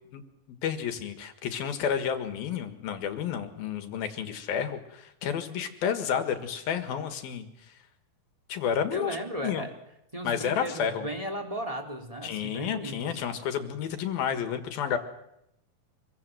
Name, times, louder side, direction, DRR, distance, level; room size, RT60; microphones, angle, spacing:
voice 1, 0.6-7.5 8.5-9.2 9.4-9.7 10.3-11.1 12.2-15.0, left 8 dB, 65° left, 8 dB, 3.4 m, -30 dB
voice 2, 8.9-9.7 10.1-13.2, equal, 10° right, 2 dB, 3.6 m, -36 dB
26.5 x 22.5 x 7.8 m, 0.81 s
omnidirectional pair, 4.8 m